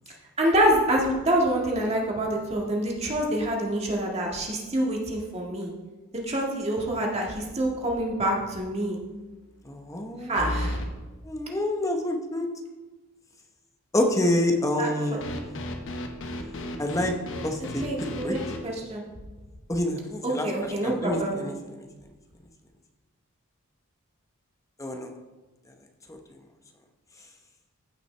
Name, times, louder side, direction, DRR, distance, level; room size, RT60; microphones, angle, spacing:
voice 1, 0.4-5.7 6.1-9.0 10.2-10.8 14.8-15.2 17.8-19.0 20.2-21.4, right 1 dB, 30° right, -2 dB, 1.8 m, -26 dB
sound 1, 7.4-7.7 8.1-8.2 10.4-10.9 15.2-18.6, left 1 dB, 65° left, 1.0 m, -33 dB
voice 2, 9.6-10.4 11.2-12.5 13.9-15.2 16.8-17.1 17.4-17.8 18.2-18.4 19.7-21.5 24.8-25.1 26.1-26.2, left 1 dB, 15° left, 3 dB, 0.9 m, -27 dB
15.0 x 5.8 x 3.3 m, 1.2 s
head